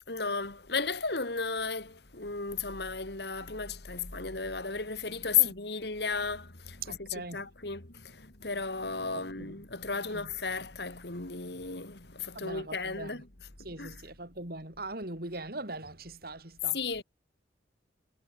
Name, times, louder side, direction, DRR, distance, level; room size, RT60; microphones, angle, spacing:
voice 1, 0.1-13.3 13.8-14.0 16.7-17.0, left 5 dB, 60° left, 2.6 m, -34 dB
voice 2, 6.8-7.5 9.4-9.6 10.1-10.3 12.3-13.2 13.6-16.8, right 2 dB, 55° right, 4.1 m, -41 dB
head